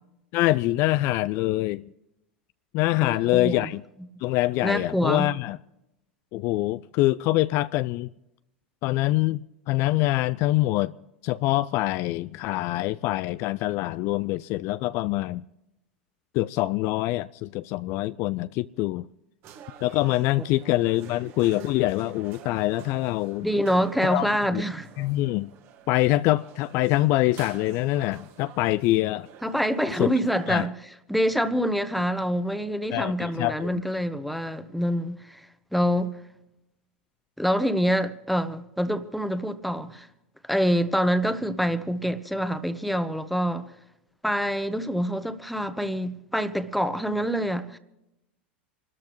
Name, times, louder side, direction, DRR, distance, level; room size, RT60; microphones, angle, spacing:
voice 1, 0.3-1.8 2.7-3.8 4.2-5.6 6.3-8.1 8.8-10.9 11.2-15.4 16.3-19.0 19.8-23.5 24.0-24.6 25.0-25.5 25.9-29.3 30.0-30.1 30.5-30.7 32.9-33.8, left 17 dB, 50° left, 0.4 m, -25 dB
voice 2, 3.0-3.7 4.6-5.3 23.4-24.9 29.4-30.7 31.1-35.5 35.7-36.1 37.4-40.1 40.5-43.7 44.2-47.8, equal, ahead, 1.2 m, -26 dB
sound 1, 19.4-30.7, right 8 dB, 45° right, 1.8 m, -48 dB
26.5 x 13.5 x 3.1 m
hypercardioid pair, 90°, 6 cm